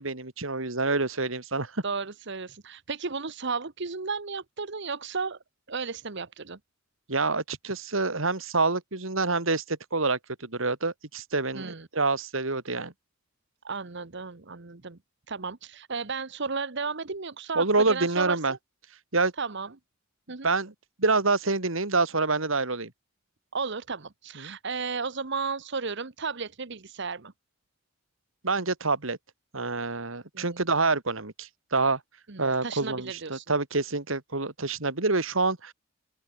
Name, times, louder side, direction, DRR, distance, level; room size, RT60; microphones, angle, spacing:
voice 1, 0.0-1.8 7.1-12.9 17.6-18.5 19.1-19.3 20.4-20.7 21.0-22.9 24.4-24.6 28.4-29.2 29.5-32.0 32.4-35.7, right 3 dB, 75° right, 2.5 m, -27 dB
voice 2, 1.8-5.4 5.7-6.6 11.5-11.9 13.6-15.0 15.3-18.6 19.4-19.7 20.3-20.5 23.5-27.3 30.3-30.6 32.3-33.5, right 4 dB, 60° right, 1.2 m, -34 dB
open air
head